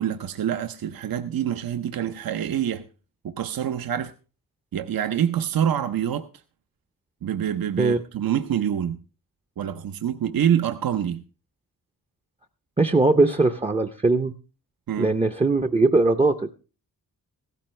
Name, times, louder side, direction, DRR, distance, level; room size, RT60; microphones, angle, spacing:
voice 1, 0.0-2.8 3.2-4.1 4.7-6.3 7.2-9.0 9.6-11.2 14.9-15.1, right 9 dB, 70° right, 0.7 m, -26 dB
voice 2, 12.8-14.3 15.0-16.5, right 3 dB, 15° right, 0.5 m, -20 dB
15.5 x 13.5 x 3.1 m
wide cardioid pair, 155°, 37 cm